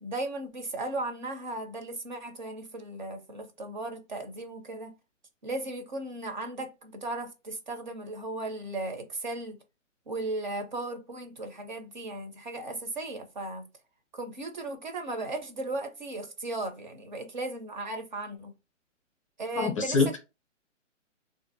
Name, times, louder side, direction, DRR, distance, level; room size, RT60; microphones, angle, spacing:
voice 1, 0.0-4.9 5.4-9.6 10.1-13.7 14.1-18.5 19.4-20.1, right 2 dB, 40° right, 0.4 m, -36 dB
voice 2, 19.6-20.2, left 4 dB, 25° left, 0.5 m, -25 dB
3.5 x 2.5 x 2.5 m
hypercardioid pair, 155°, 38 cm